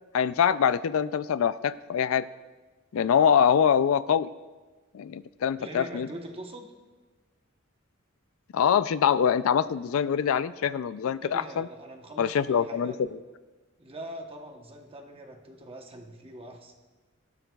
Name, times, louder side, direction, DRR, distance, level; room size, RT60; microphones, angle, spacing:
voice 1, 0.1-2.2 2.9-4.3 4.9-6.1 8.5-11.7 12.2-13.2, left 8 dB, 75° left, 15 dB, 0.4 m, -24 dB
voice 2, 5.6-6.7 11.2-13.0 13.8-16.7, right 1 dB, 25° right, 2 dB, 1.0 m, -43 dB
18.0 x 12.5 x 2.3 m, 1.3 s
head